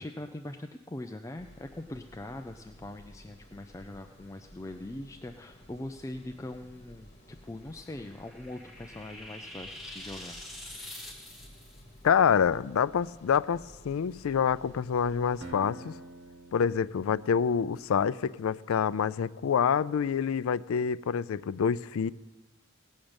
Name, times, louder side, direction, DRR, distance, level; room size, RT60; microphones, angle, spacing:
voice 1, 0.0-10.4, left 1 dB, 15° left, 6 dB, 0.4 m, -42 dB
sound 1, 1.4-15.4, equal, 30° left, 1.8 m, -54 dB
sound 2, 7.7-11.8, left 1 dB, ahead, 1.8 m, -45 dB
voice 2, 12.0-15.9 16.5-22.1, left 7 dB, 80° left, 17 dB, 0.4 m, -27 dB
Acoustic guitar, 15.4-18.4, right 2 dB, 65° right, 1.5 m, -48 dB
17.5 x 6.4 x 8.8 m, 1.2 s
head